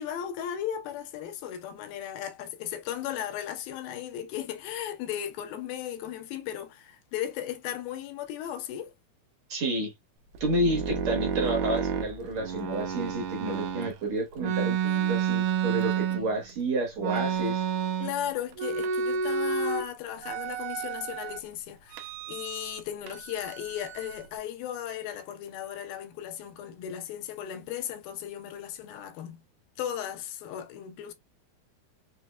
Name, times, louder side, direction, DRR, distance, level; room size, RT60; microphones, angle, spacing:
voice 1, 0.0-8.9 14.8-15.2 18.0-29.4 29.8-31.1, left 10 dB, 80° left, 2.4 m, -36 dB
voice 2, 9.5-9.9 10.4-14.8 15.1-17.7, right 1 dB, 55° right, 2.1 m, -30 dB
sound 1, 10.3-13.9 14.4-16.5 17.0-18.3 18.5-19.8 20.2-21.4 21.9-22.8 23.1-24.3, right 7 dB, 75° right, 2.1 m, -30 dB
6.4 x 3.1 x 2.2 m
omnidirectional pair, 4.4 m